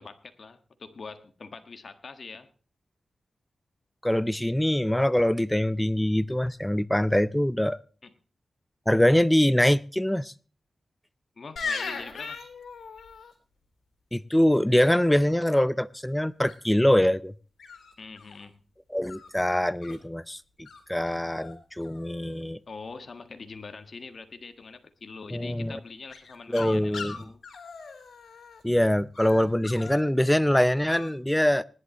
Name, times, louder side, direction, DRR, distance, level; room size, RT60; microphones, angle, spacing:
voice 1, 0.0-2.5 8.0-8.1 11.4-12.4 18.0-18.5 22.7-27.4, left 4 dB, 60° left, 1.6 m, -43 dB
voice 2, 4.0-7.8 8.9-10.3 14.1-17.3 18.9-20.4 20.9-22.6 25.3-25.8 26.5-27.2 28.6-31.6, left 1 dB, 10° left, 0.5 m, -23 dB
sound 1, 11.6-13.3 16.5-16.9 17.6-18.4 19.0-20.0 20.7-20.8 21.1-21.5 21.8-22.4 26.1-28.6 29.1-30.0 30.9-31.1, left 5 dB, 85° left, 3.3 m, -39 dB
20.0 x 11.0 x 3.0 m
cardioid pair, 55°, 0 cm